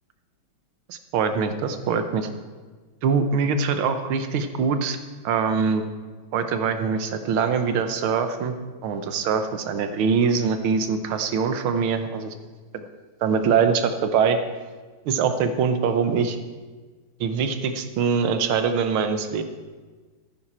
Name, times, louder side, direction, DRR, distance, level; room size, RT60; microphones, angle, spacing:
voice 1, 0.9-2.3 3.0-5.0 5.2-5.8 6.3-8.5 8.8-12.3 12.7-12.8 13.2-14.4 15.1-16.4 17.2-19.4, right 6 dB, 85° right, 8 dB, 1.8 m, -23 dB
14.0 x 10.0 x 4.3 m, 1.4 s
omnidirectional pair, 2.2 m